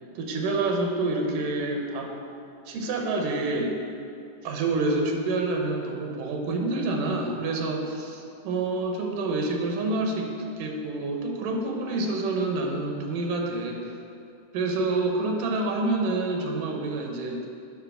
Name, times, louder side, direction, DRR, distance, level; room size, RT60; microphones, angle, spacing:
voice 1, 0.2-2.1 2.7-3.7 4.4-10.3 10.6-14.0 14.5-17.4, right 2 dB, 80° right, 2 dB, 2.5 m, -27 dB
8.1 x 5.6 x 6.2 m, 2.5 s
omnidirectional pair, 3.7 m